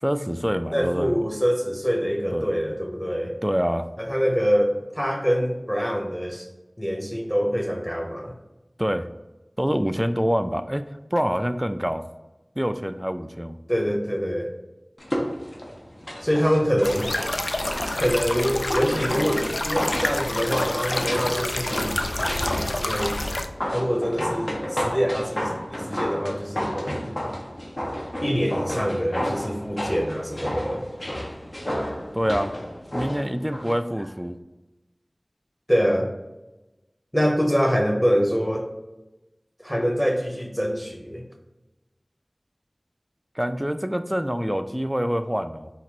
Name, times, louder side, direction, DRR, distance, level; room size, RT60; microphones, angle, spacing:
voice 1, 0.0-1.2 2.3-2.5 3.4-3.9 8.8-9.1 9.6-12.0 12.6-13.6 32.1-32.5 32.9-34.4 43.4-45.7, equal, 10° right, 9 dB, 0.3 m, -26 dB
voice 2, 0.7-3.4 4.0-6.5 6.8-8.3 13.7-14.5 16.2-17.1 17.9-23.2 23.7-27.1 28.2-30.9 35.7-36.1 37.1-38.7 39.6-41.2, equal, 5° left, 2 dB, 0.9 m, -25 dB
sound 1, 15.0-33.8 34.1-34.2, equal, 55° left, 0.9 m, -32 dB
sound 2, 16.8-23.5, left 1 dB, 70° left, 0.4 m, -28 dB
4.2 x 2.5 x 4.1 m, 1.0 s
wide cardioid pair, 40°, 0 cm